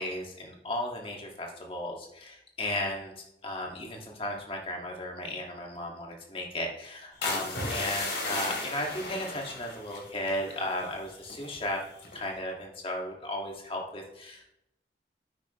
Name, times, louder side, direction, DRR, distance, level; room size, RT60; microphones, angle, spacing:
voice 1, 0.0-11.8 12.1-14.5, left 1 dB, 30° left, 0 dB, 1.9 m, -35 dB
sound 1, 7.2-11.6 12.1-12.4, left 2 dB, 75° left, 3.2 m, -35 dB
10.5 x 8.8 x 3.1 m, 0.85 s
head